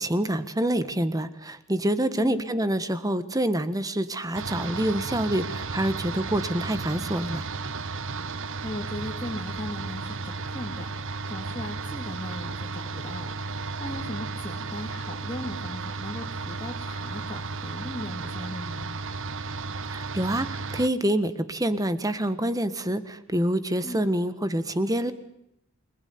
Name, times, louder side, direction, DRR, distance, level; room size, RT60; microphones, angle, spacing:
voice 1, 0.0-7.5 19.9-25.1, right 1 dB, 15° right, 12 dB, 1.5 m, -26 dB
voice 2, 2.2-2.5 8.4-10.9 11.3-13.4 13.8-18.9 23.8-24.0, left 1 dB, 20° left, -3 dB, 3.0 m, -37 dB
sound 1, 4.3-20.9, right 4 dB, 65° right, 1.1 m, -34 dB
28.5 x 20.5 x 9.6 m, 0.82 s
head